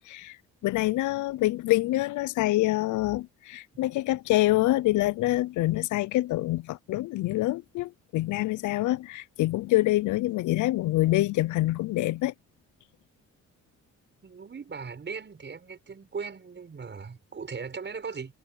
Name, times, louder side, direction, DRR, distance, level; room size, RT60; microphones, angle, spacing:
voice 1, 0.6-12.3, left 17 dB, 75° left, 0.5 m, -26 dB
voice 2, 14.2-18.3, right 5 dB, 35° right, 7.1 m, -38 dB
cardioid pair, 90°, 30 cm